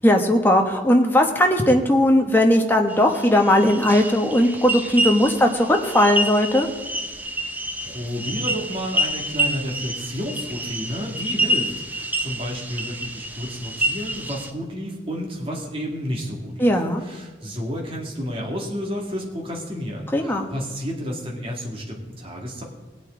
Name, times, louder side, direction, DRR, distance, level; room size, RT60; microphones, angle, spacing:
voice 1, 0.0-6.7 16.6-17.0 20.1-20.5, left 1 dB, 10° left, 2 dB, 1.3 m, -18 dB
sound 1, 2.9-14.5, right 1 dB, 10° right, 0.7 m, -28 dB
voice 2, 7.8-16.7 17.0-22.6, equal, 30° right, -1 dB, 2.3 m, -31 dB
19.5 x 8.5 x 3.9 m, 1.3 s
head